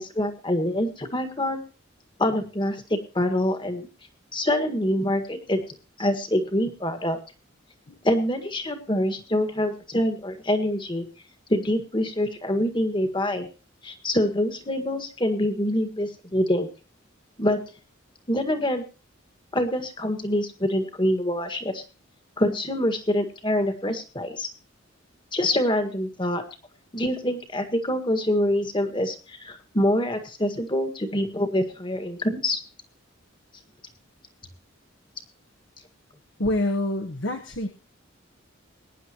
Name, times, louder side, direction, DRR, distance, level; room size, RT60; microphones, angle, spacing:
voice 1, 0.0-1.6 2.2-3.9 4.3-5.6 6.0-7.2 8.0-11.0 11.5-13.5 13.8-16.7 17.4-17.6 18.3-18.8 19.5-21.8 22.4-24.5 25.3-26.4 26.9-32.6, left 1 dB, 25° left, 8 dB, 1.7 m, -25 dB
voice 2, 36.4-37.7, left 1 dB, 60° left, 6 dB, 1.3 m, -26 dB
22.0 x 10.0 x 3.0 m, 0.34 s
head